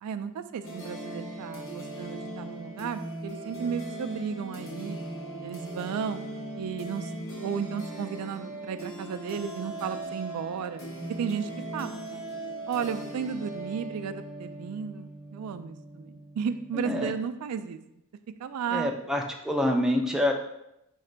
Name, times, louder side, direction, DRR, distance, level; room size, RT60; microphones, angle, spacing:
voice 1, 0.0-5.0 5.4-6.2 6.5-10.9 11.2-12.3 12.7-17.8 18.4-18.9, right 7 dB, 90° right, 10 dB, 0.3 m, -34 dB
sound 1, 0.6-17.2, right 1 dB, 60° left, 1.3 m, -39 dB
voice 2, 16.7-17.1 18.7-20.3, left 1 dB, ahead, 2 dB, 0.3 m, -27 dB
4.3 x 3.2 x 3.8 m, 0.83 s
head